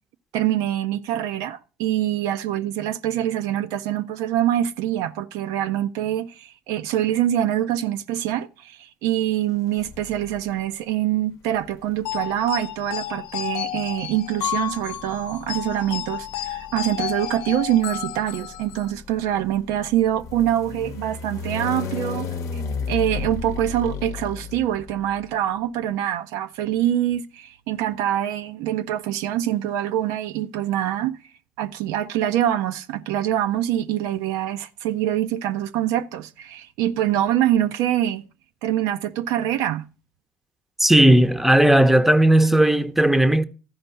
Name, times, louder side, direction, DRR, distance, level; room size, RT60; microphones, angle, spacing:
voice 1, 0.3-22.3 22.5-22.6 22.9-31.2 31.6-38.2 38.6-39.8, right 12 dB, 65° right, 0.5 m, -24 dB
sound 1, 9.8-10.5 11.5-25.2, left 6 dB, 50° left, 0.8 m, -35 dB
sound 2, 12.1-18.9, left 12 dB, 70° left, 0.4 m, -31 dB
voice 2, 40.8-43.4, right 1 dB, 5° right, 0.7 m, -16 dB
13.5 x 5.2 x 5.5 m
hypercardioid pair, 60°, 7 cm